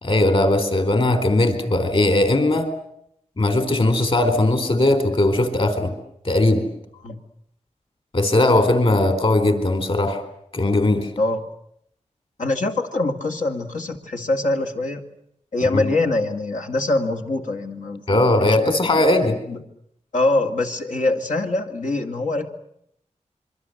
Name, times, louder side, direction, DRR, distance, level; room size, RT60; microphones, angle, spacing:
voice 1, 0.0-2.7 3.4-5.9 6.2-6.6 8.1-10.2 10.5-11.1 15.7-15.8 18.1-19.4, left 2 dB, 50° left, 9 dB, 4.2 m, -19 dB
voice 2, 12.4-15.0 15.5-18.5 19.5-19.6 20.1-22.5, left 2 dB, 85° left, 3 dB, 2.5 m, -23 dB
27.0 x 23.5 x 8.0 m, 0.74 s
wide cardioid pair, 85°, 12 cm